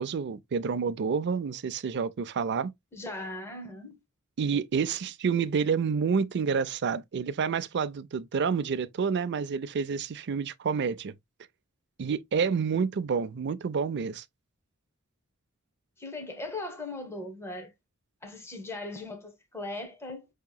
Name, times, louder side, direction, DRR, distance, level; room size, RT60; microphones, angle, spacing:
voice 1, 0.0-2.7 4.4-11.1 12.0-14.2, right 6 dB, 50° right, 0.4 m, -29 dB
voice 2, 2.9-4.0 16.0-17.7 18.2-20.3, left 2 dB, 10° left, 0.9 m, -39 dB
5.7 x 2.8 x 2.2 m
head